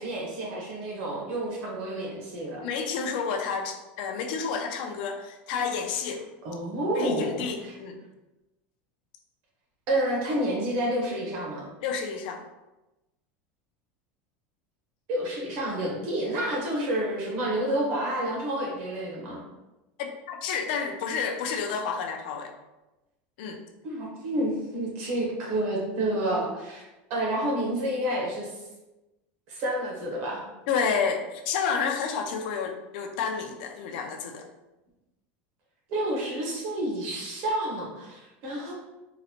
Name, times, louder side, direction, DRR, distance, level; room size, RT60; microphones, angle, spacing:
voice 1, 0.0-2.6 6.4-7.7 9.9-11.7 15.1-19.4 23.8-26.8 27.1-28.6 29.5-30.4 35.9-38.7, right 1 dB, 45° right, -2 dB, 0.9 m, -29 dB
voice 2, 2.6-6.2 7.0-8.0 11.8-12.4 20.0-22.5 23.4-23.6 30.7-34.4, left 6 dB, 60° left, 4 dB, 0.4 m, -30 dB
3.8 x 2.1 x 2.8 m, 1.0 s
supercardioid pair, 175°, 6 cm